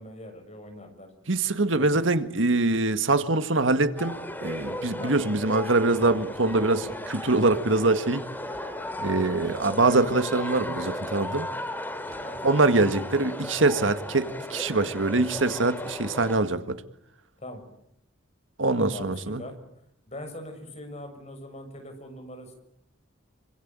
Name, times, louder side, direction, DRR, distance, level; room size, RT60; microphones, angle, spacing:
voice 1, 0.0-1.1 1.7-2.0 5.0-5.2 9.1-9.3 12.2-12.7 17.4-17.6 18.7-19.5 20.1-22.6, left 1 dB, 35° left, 6.6 m, -41 dB
voice 2, 1.3-4.1 4.4-8.2 9.0-11.5 12.4-16.8 18.6-19.4, right 2 dB, 80° right, 1.8 m, -24 dB
sound 1, 4.0-16.4, left 1 dB, 10° left, 2.9 m, -36 dB
26.5 x 25.0 x 8.9 m
head